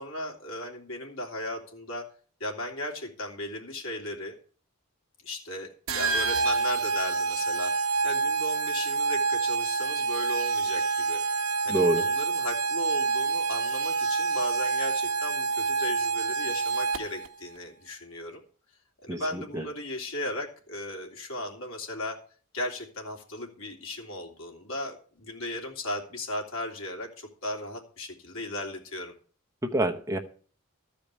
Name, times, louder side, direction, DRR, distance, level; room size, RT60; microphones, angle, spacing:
voice 1, 0.0-2.0 2.4-4.3 5.2-11.2 11.6-18.4 19.0-22.2 22.5-29.1, left 1 dB, 70° left, 1 dB, 3.2 m, -36 dB
sound 1, 5.9-17.3, right 4 dB, 70° right, 1.4 m, -27 dB
voice 2, 11.7-12.0 19.1-19.7 29.6-30.2, right 2 dB, 15° right, 3 dB, 1.0 m, -27 dB
14.5 x 5.1 x 8.4 m, 0.43 s
head